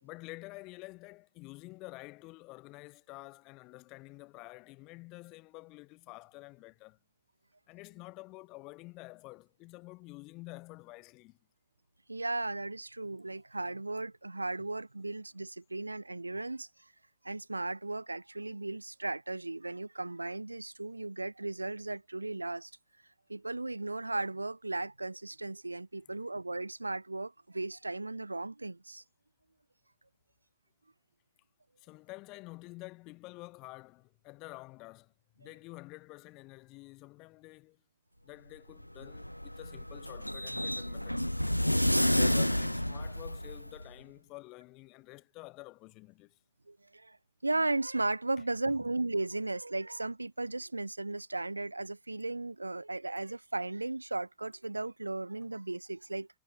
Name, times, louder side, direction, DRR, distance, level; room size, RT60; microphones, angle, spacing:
voice 1, 0.0-7.0 7.7-11.4 31.8-37.8 38.2-41.4 41.9-46.4, left 23 dB, 40° left, 3.5 m, -49 dB
voice 2, 12.1-16.7 17.2-22.7 23.3-29.0 46.7-47.2 47.4-56.3, right 2 dB, 85° right, 0.4 m, -36 dB
sound 1, 38.8-43.9, equal, 90° left, 0.5 m, -30 dB
figure-of-eight pair, 90°, 0 cm